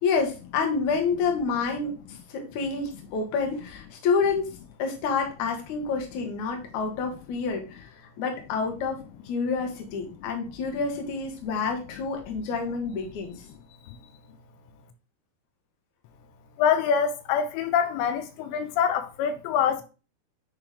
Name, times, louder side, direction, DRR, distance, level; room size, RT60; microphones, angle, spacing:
voice 1, 0.0-4.5 4.8-7.9 8.2-9.0 9.3-13.4, left 5 dB, 60° left, 2.2 m, -28 dB
voice 2, 16.6-19.8, left 7 dB, 85° left, 2.9 m, -25 dB
9.7 x 3.5 x 3.4 m
omnidirectional pair, 5.0 m